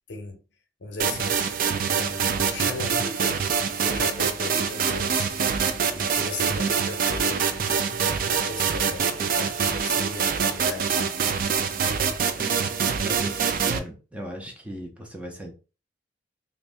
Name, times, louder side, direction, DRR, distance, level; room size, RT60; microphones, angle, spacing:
voice 1, 0.1-0.4 0.8-1.4 1.9-11.8, left 3 dB, 70° left, 0.7 m, -37 dB
sound 1, 1.0-13.8, right 6 dB, 50° right, 0.4 m, -25 dB
voice 2, 12.4-15.5, equal, 5° right, 0.6 m, -38 dB
2.6 x 2.6 x 3.3 m
head